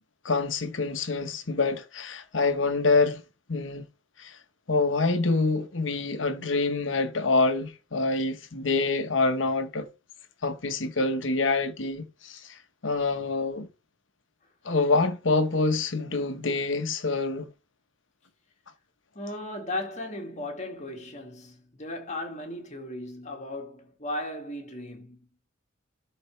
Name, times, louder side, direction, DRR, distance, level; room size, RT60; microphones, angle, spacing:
voice 1, 0.2-3.2 3.5-3.8 4.2-4.4 4.7-9.9 10.4-13.7 14.6-17.5, left 3 dB, 70° left, 1.1 m, -26 dB
voice 2, 19.1-25.2, left 1 dB, 35° left, 2.1 m, -36 dB
13.0 x 4.4 x 3.2 m
head